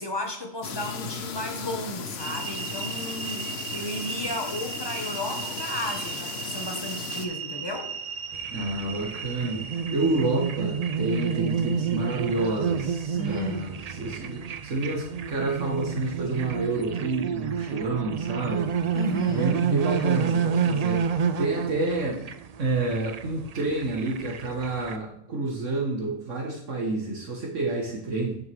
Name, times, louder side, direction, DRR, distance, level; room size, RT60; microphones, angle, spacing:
voice 1, 0.0-7.9 13.1-13.7 18.9-19.6, left 1 dB, 20° left, 3 dB, 1.4 m, -33 dB
sound 1, 0.6-7.3, left 6 dB, 55° left, 1.0 m, -36 dB
sound 2, 2.2-16.3, right 6 dB, 50° right, 0.8 m, -38 dB
sound 3, 8.3-25.0, right 7 dB, 90° right, 0.3 m, -29 dB
voice 2, 8.5-18.7 19.3-21.1 21.4-22.2 22.6-28.4, right 2 dB, 70° right, 0 dB, 1.7 m, -29 dB
9.5 x 7.0 x 3.5 m, 0.76 s
omnidirectional pair, 1.3 m